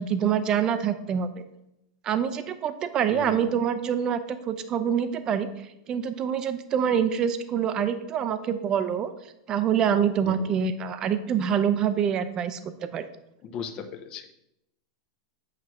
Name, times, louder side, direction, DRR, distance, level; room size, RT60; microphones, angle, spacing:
voice 1, 0.0-1.4 2.0-5.5 5.9-9.1 9.5-13.0, right 8 dB, 25° right, 11 dB, 0.6 m, -26 dB
voice 2, 3.1-3.5 10.2-10.4 13.4-14.3, left 6 dB, 30° left, 6 dB, 0.8 m, -37 dB
8.2 x 3.2 x 6.2 m, 0.84 s
supercardioid pair, 150°, 3 cm